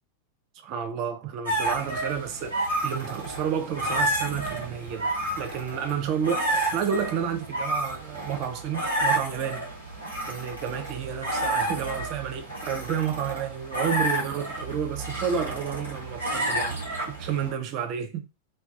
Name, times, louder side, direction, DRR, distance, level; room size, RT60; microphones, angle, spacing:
voice 1, 0.6-9.7 10.3-18.3, right 8 dB, 40° right, 0.5 m, -31 dB
sound 1, 1.4-17.5, right 1 dB, 90° left, 1.1 m, -30 dB
2.3 x 2.3 x 2.4 m
figure-of-eight pair, 90°, 0 cm